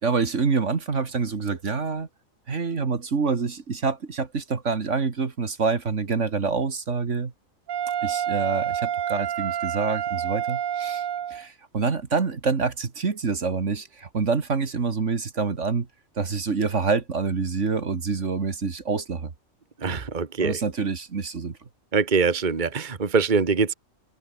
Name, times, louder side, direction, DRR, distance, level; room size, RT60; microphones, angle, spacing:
voice 1, 0.0-2.1 2.5-7.3 8.0-15.9 16.2-19.3 19.9-20.0 20.4-21.6, right 5 dB, 60° right, 2.2 m, -26 dB
Wind instrument woodwind instrument, 7.7-11.4, right 10 dB, 80° right, 1.4 m, -28 dB
voice 2, 19.8-20.6 21.9-23.7, right 5 dB, 35° right, 1.7 m, -23 dB
omnidirectional pair, 1.4 m